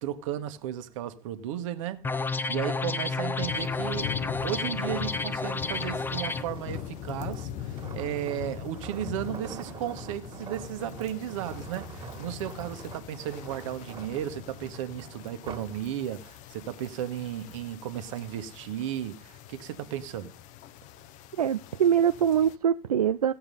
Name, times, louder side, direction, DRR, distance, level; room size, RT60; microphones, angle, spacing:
voice 1, 0.0-4.1 4.4-20.3, right 11 dB, 55° right, 1.3 m, -35 dB
sound 1, 2.0-6.4, left 3 dB, 10° left, 0.6 m, -31 dB
sound 2, 3.4-22.6, left 11 dB, 40° left, 0.8 m, -42 dB
sound 3, 5.6-15.8 16.3-16.5, right 6 dB, 25° right, 2.1 m, -45 dB
voice 2, 21.4-23.3, right 9 dB, 80° right, 0.5 m, -23 dB
15.5 x 7.0 x 5.4 m
figure-of-eight pair, 90°, 19 cm